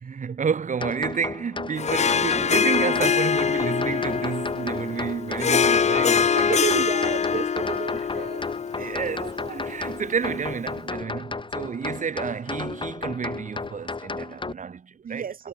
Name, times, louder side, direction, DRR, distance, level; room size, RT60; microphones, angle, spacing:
voice 1, 0.0-6.7 8.8-15.2, right 6 dB, 60° right, 1.3 m, -30 dB
sound 1, 0.8-14.5, left 3 dB, 35° left, 1.6 m, -34 dB
Harp, 1.8-10.4, left 6 dB, 50° left, 0.6 m, -24 dB
voice 2, 6.3-8.4 8.8-9.8 15.0-15.5, right 7 dB, 85° right, 3.1 m, -32 dB
wide cardioid pair, 85°, 15 cm